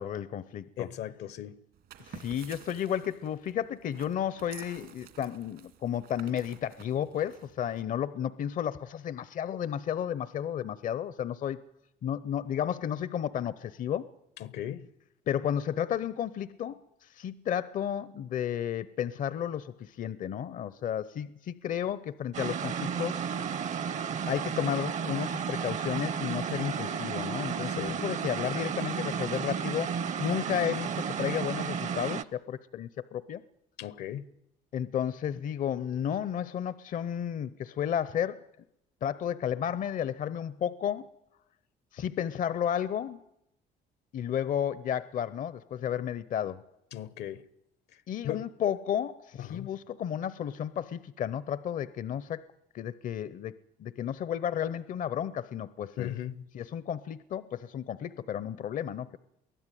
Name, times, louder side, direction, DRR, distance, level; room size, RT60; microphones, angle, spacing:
voice 1, 0.0-0.9 2.0-11.6 12.0-14.1 15.3-23.3 24.3-29.9 30.2-33.4 34.7-38.4 39.0-41.1 41.9-43.2 44.1-46.6 48.1-52.4 52.7-56.1 56.5-59.2, left 9 dB, 50° left, 0.7 m, -32 dB
voice 2, 0.8-1.6 14.4-14.9 27.7-28.0 33.8-34.2 46.9-47.4 48.2-48.4 49.4-49.7 56.0-56.4, left 11 dB, 75° left, 1.0 m, -37 dB
sound 1, 1.7-7.8, right 10 dB, 70° right, 2.4 m, -51 dB
sound 2, 22.3-32.2, right 7 dB, 45° right, 0.8 m, -33 dB
23.0 x 16.0 x 9.2 m
cardioid pair, 110°, 17 cm